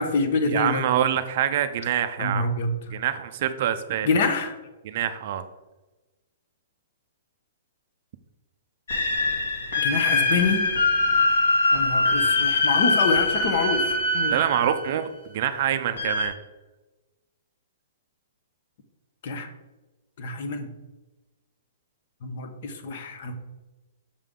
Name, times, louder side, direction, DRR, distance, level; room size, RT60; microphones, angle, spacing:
voice 1, 0.0-0.8 2.2-2.7 4.0-4.6 9.8-10.7 11.7-14.3 19.2-19.5 20.2-20.7 22.2-23.3, left 3 dB, 40° left, 7 dB, 0.9 m, -26 dB
voice 2, 0.5-2.5 2.9-4.1 4.8-5.4 14.3-16.3, right 10 dB, 40° right, 10 dB, 0.4 m, -25 dB
sound 1, 8.9-15.0 16.0-16.3, left 2 dB, 70° left, 2.1 m, -23 dB
6.6 x 5.3 x 3.7 m, 1.1 s
hypercardioid pair, 175°, 0 cm